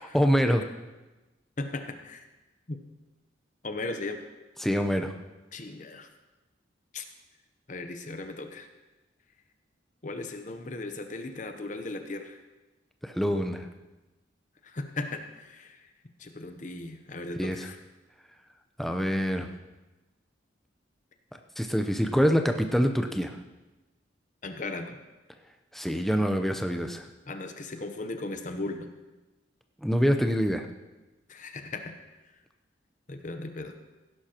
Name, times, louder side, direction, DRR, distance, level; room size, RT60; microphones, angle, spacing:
voice 1, 0.1-0.6 4.6-5.1 13.0-13.7 17.4-17.6 18.8-19.5 21.6-23.4 25.7-27.0 29.8-30.7, equal, ahead, 5 dB, 0.7 m, -25 dB
voice 2, 1.6-2.2 2.7-2.8 3.6-4.3 5.5-6.1 6.9-7.0 7.7-8.7 10.0-12.4 14.6-15.8 16.2-17.8 24.4-25.0 27.3-28.9 31.3-31.9 33.1-33.7, left 2 dB, 40° left, 6 dB, 0.8 m, -37 dB
16.5 x 11.0 x 3.0 m, 1.1 s
head